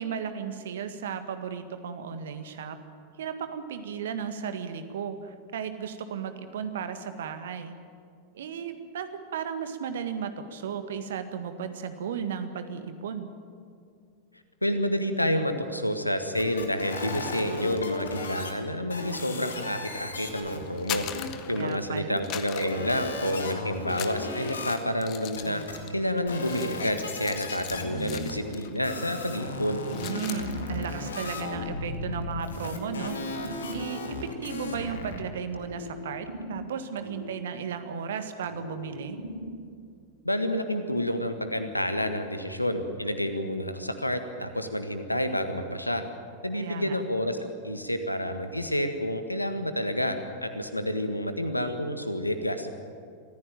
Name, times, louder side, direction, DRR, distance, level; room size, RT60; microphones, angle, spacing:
voice 1, 0.0-2.8 3.2-7.8 8.3-13.3 21.5-22.2 29.9-33.2 33.7-39.2 46.5-47.0, right 7 dB, 60° right, 9 dB, 1.7 m, -35 dB
voice 2, 14.6-21.1 21.5-25.6 25.9-29.8 40.2-46.0 46.4-52.7, equal, 85° left, 8 dB, 1.6 m, -29 dB
sound 1, 16.4-18.5 18.9-22.2 22.5-24.7 25.4-25.9 26.3-35.2, left 3 dB, 70° left, 2.4 m, -36 dB
sound 2, 20.7-21.9 22.2-23.5 23.9-28.8 29.1-29.3 29.6-30.5, left 11 dB, 40° left, 1.3 m, -40 dB
sound 3, 28.3-29.3 29.7-32.2 32.6-35.1 35.5-38.0 38.4-39.9, left 1 dB, 85° right, 1.9 m, -41 dB
24.0 x 15.0 x 9.1 m, 2.3 s
figure-of-eight pair, 90°, 0 cm